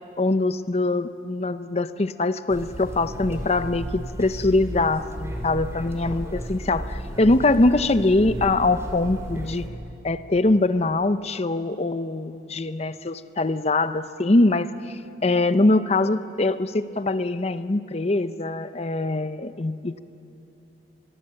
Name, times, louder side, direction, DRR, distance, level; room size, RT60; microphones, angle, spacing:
voice 1, 0.2-9.7 10.0-20.0, left 2 dB, 35° left, 13 dB, 0.7 m, -23 dB
sound 1, 2.5-9.7, right 1 dB, 15° right, 3.0 m, -34 dB
24.0 x 22.5 x 7.8 m, 2.8 s
head